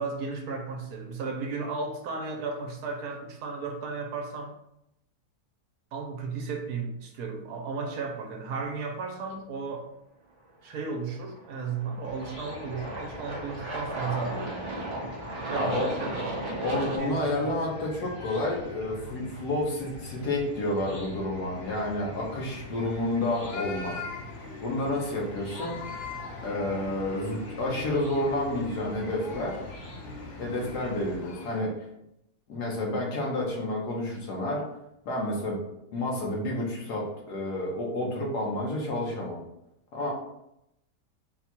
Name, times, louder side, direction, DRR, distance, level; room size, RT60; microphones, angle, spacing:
voice 1, 0.0-4.5 5.9-9.9 10.6-14.6 15.5-16.1 17.0-17.5, right 4 dB, 75° right, 3 dB, 1.1 m, -34 dB
Aircraft, 11.2-17.0, right 1 dB, 40° right, 0.4 m, -35 dB
Chicken rooster / Cricket, 12.0-31.2, left 1 dB, 25° left, 0.9 m, -44 dB
voice 2, 15.5-15.9 16.6-24.0 24.6-29.6 30.4-31.7 32.5-34.6 35.0-35.6 35.9-39.4 39.9-40.1, left 1 dB, 85° left, -2 dB, 1.7 m, -30 dB
sound 1, 22.1-31.6, left 4 dB, 65° left, 0.6 m, -43 dB
4.3 x 2.3 x 4.3 m, 0.82 s
omnidirectional pair, 1.7 m